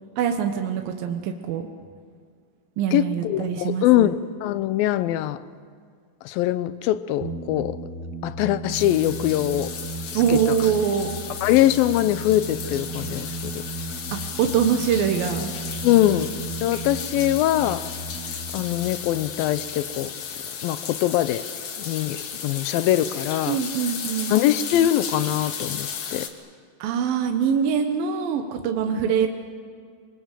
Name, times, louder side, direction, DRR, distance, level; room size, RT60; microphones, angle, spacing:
voice 1, 0.2-1.7 2.8-4.1 10.1-11.1 14.4-15.5 23.5-24.4 26.0-26.2 26.8-29.3, right 8 dB, 80° right, 5 dB, 2.9 m, -24 dB
voice 2, 2.9-5.4 6.2-7.8 8.2-9.7 10.1-10.4 11.4-13.6 15.8-16.3 16.6-17.9 18.5-20.1 20.6-21.4 21.9-22.2 22.4-23.6 24.3-26.3, left 13 dB, 85° left, 14 dB, 2.5 m, -22 dB
sound 1, 7.2-20.4, right 2 dB, 50° right, 3.0 m, -36 dB
sound 2, 8.7-26.3, left 7 dB, 50° left, 2.1 m, -34 dB
25.5 x 24.5 x 7.5 m, 2.1 s
omnidirectional pair, 4.1 m